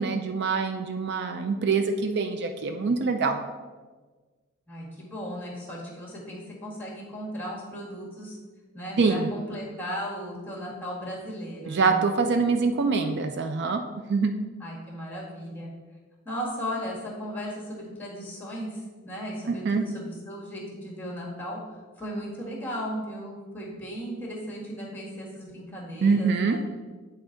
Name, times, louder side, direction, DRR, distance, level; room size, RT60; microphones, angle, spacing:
voice 1, 0.0-3.4 9.0-9.3 11.7-14.3 19.5-19.8 26.0-26.6, right 4 dB, 55° right, 6 dB, 0.4 m, -25 dB
voice 2, 4.7-8.4 8.7-12.0 14.6-15.7 16.3-21.6 22.0-26.6, equal, 10° left, -3 dB, 1.7 m, -36 dB
8.5 x 4.5 x 3.8 m, 1.4 s
head